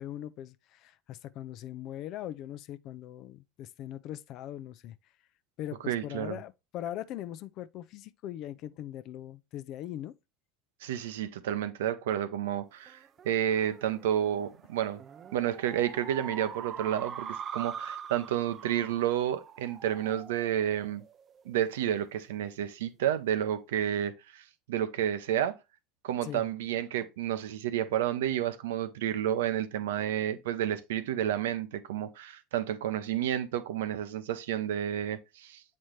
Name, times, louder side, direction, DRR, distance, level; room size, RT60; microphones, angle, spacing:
voice 1, 0.0-5.0 5.6-10.1 26.2-26.5, left 12 dB, 55° left, 0.5 m, -40 dB
voice 2, 5.9-6.4 10.8-13.0 13.2-15.0 15.3-21.0 21.5-25.5 26.0-35.6, right 10 dB, 80° right, 0.7 m, -30 dB
sound 1, 12.9-21.7, right 7 dB, 40° right, 0.5 m, -44 dB
7.6 x 4.2 x 3.2 m
hypercardioid pair, 90°, 0 cm